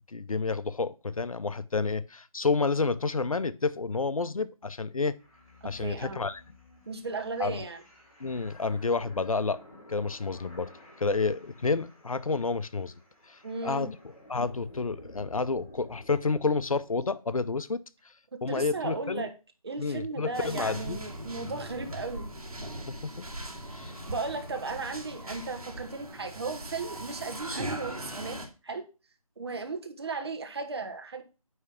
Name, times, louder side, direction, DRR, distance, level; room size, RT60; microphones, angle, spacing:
voice 1, 0.1-5.2 5.6-6.4 7.4-7.6 8.2-9.6 9.9-10.7 11.0-12.9 13.3-13.9 14.3-17.8 18.4-19.3 19.8-21.0 22.9-23.3 23.7-24.0, left 4 dB, 70° left, 0.6 m, -30 dB
sound 1, 5.2-16.9, left 1 dB, 20° left, 3.1 m, -53 dB
voice 2, 5.6-6.2 6.9-7.8 13.4-13.9 18.5-19.3 19.6-22.3 23.8-28.9 29.4-31.2, right 4 dB, 45° right, 1.2 m, -36 dB
sound 2, 20.3-28.5, right 1 dB, 85° right, 2.3 m, -40 dB
9.3 x 3.3 x 5.9 m
figure-of-eight pair, 155°, 19 cm